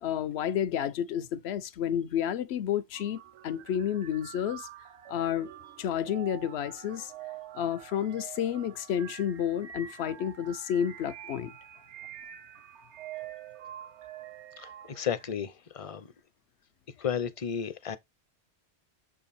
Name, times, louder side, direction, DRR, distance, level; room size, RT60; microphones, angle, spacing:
voice 1, 0.0-4.7 5.1-5.5 5.8-7.1 7.5-11.5, left 9 dB, 75° left, 0.9 m, -30 dB
sound 1, 2.9-15.3, right 11 dB, 85° right, 1.0 m, -46 dB
voice 2, 14.6-16.1 17.0-18.0, left 8 dB, 40° left, 0.6 m, -33 dB
7.0 x 3.7 x 4.1 m
omnidirectional pair, 1.1 m